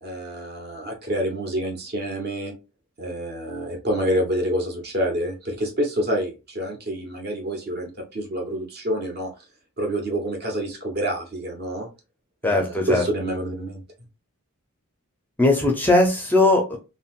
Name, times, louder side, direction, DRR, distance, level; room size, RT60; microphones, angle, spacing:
voice 1, 0.0-2.5 3.0-9.3 9.8-11.9 12.4-13.8, equal, 45° right, 2 dB, 0.9 m, -27 dB
voice 2, 12.4-13.0 15.4-16.8, left 2 dB, 10° left, 2 dB, 0.4 m, -19 dB
3.7 x 2.0 x 2.3 m, 0.29 s
head